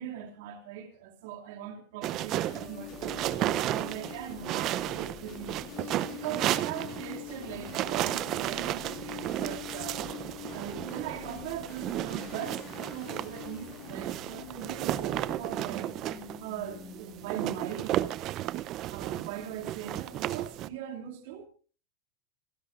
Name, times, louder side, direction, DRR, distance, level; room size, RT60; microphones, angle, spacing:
voice 1, 0.0-3.1 3.7-12.6 12.9-15.9 16.4-18.5 18.9-21.5, right 10 dB, 70° right, 2.7 m, -40 dB
sound 1, 2.0-20.7, right 14 dB, 45° right, 0.7 m, -34 dB
sound 2, 2.5-17.6, left 10 dB, 40° left, 2.6 m, -45 dB
27.5 x 10.5 x 2.6 m
supercardioid pair, 115°, 0 cm